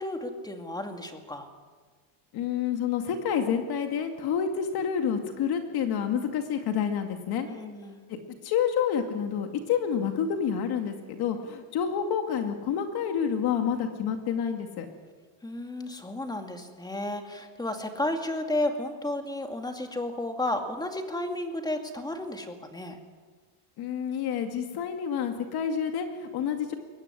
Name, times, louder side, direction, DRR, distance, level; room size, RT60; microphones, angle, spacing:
voice 1, 0.0-1.5 7.5-8.0 15.4-23.0, left 1 dB, 10° left, 5 dB, 2.3 m, -32 dB
voice 2, 2.3-7.5 8.1-8.2 8.4-14.9 23.8-26.7, left 7 dB, 50° left, 5 dB, 2.3 m, -28 dB
23.0 x 18.0 x 9.8 m, 1.5 s
cardioid pair, 150°, 48 cm